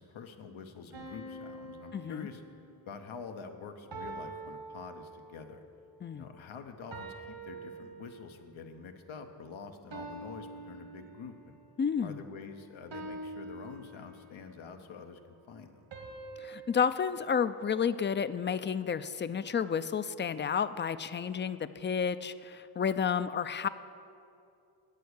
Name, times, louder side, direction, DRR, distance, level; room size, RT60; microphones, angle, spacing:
voice 1, 0.0-2.4 2.8-5.6 6.1-11.6 12.0-15.8, left 5 dB, 85° left, 6 dB, 0.9 m, -47 dB
sound 1, 0.9-2.9 3.9-5.6 6.9-8.5 9.9-11.6 12.9-14.5 15.9-18.2, right 2 dB, 70° right, 1.6 m, -46 dB
voice 2, 1.9-2.3 6.0-6.2 11.8-12.2 16.4-23.7, left 7 dB, 25° left, 13 dB, 0.3 m, -31 dB
8.4 x 6.5 x 8.0 m, 2.6 s
cardioid pair, 55°, 46 cm